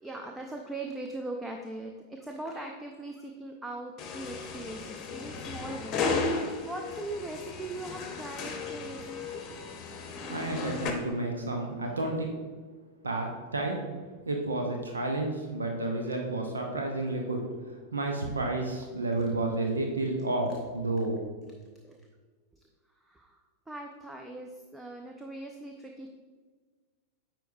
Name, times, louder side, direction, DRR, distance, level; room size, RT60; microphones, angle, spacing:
voice 1, 0.0-9.5 11.9-12.0 21.8-22.0 22.5-22.6 22.9-26.1, right 2 dB, 5° right, 2 dB, 0.5 m, -40 dB
sound 1, 4.0-10.9, left 4 dB, 30° left, 0.9 m, -35 dB
voice 2, 10.3-12.3 13.0-13.8 14.3-17.4 17.7-21.2, right 2 dB, 75° right, 2 dB, 0.8 m, -31 dB
9.1 x 4.6 x 2.7 m, 1.4 s
figure-of-eight pair, 90°, 0 cm